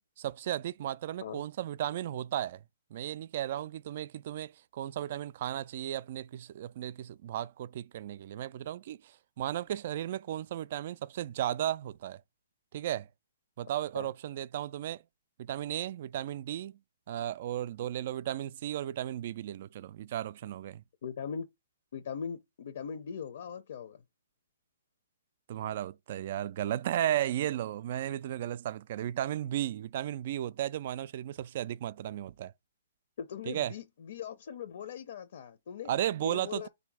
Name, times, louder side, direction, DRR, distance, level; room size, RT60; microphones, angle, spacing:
voice 1, 0.2-2.6 2.9-12.2 12.7-13.1 13.6-15.0 15.4-16.8 17.1-20.8 25.5-32.5 33.5-33.7 35.9-36.7, right 12 dB, 50° right, 0.3 m, -35 dB
voice 2, 21.0-21.5 21.9-24.0 33.2-35.9 36.2-36.7, left 7 dB, 60° left, 0.6 m, -40 dB
3.4 x 2.7 x 4.6 m
hypercardioid pair, 145°, 0 cm